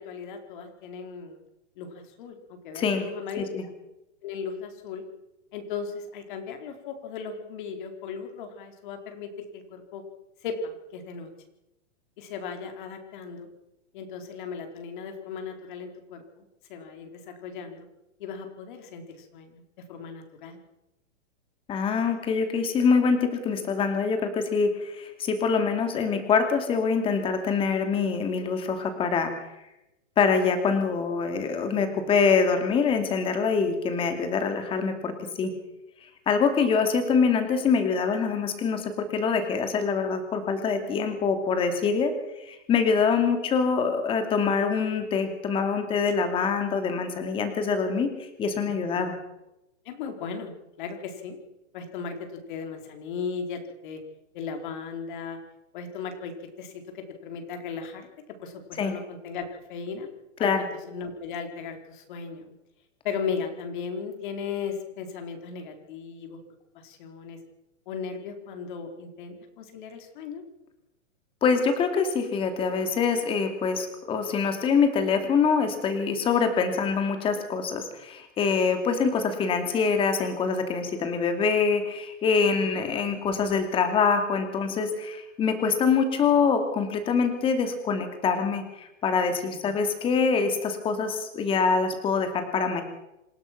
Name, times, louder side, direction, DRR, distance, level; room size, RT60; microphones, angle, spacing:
voice 1, 0.0-1.4 1.8-3.4 4.2-5.0 5.5-10.0 10.4-11.3 12.2-13.5 13.9-16.4 16.7-17.9 18.2-19.6 19.9-20.6 48.9-49.1 49.8-51.4 51.7-54.0 54.3-55.4 55.7-58.1 58.4-60.1 60.4-60.5 60.9-62.5 63.0-66.4 66.8-67.4 67.9-70.4 82.6-82.8 89.5-89.8, left 6 dB, 40° left, 5 dB, 4.4 m, -37 dB
voice 2, 21.7-29.5 30.2-35.5 36.3-42.1 42.4-48.1 48.4-49.2 58.8-58.9 60.4-60.6 71.4-92.8, left 5 dB, 15° left, 7 dB, 2.7 m, -25 dB
27.5 x 16.5 x 6.0 m, 0.93 s
hypercardioid pair, 165°, 37 cm